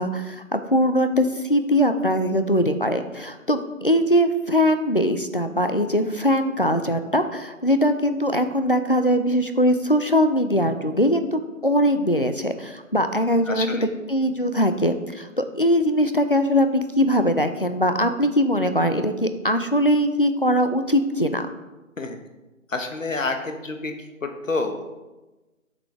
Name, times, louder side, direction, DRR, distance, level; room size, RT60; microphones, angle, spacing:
voice 1, 0.0-21.5, equal, 45° left, 8 dB, 0.4 m, -21 dB
voice 2, 13.5-13.9 22.0-22.2 22.7-24.0 24.2-24.8, left 3 dB, 65° left, 6 dB, 1.2 m, -28 dB
8.0 x 6.2 x 3.3 m, 1.1 s
figure-of-eight pair, 165°, 41 cm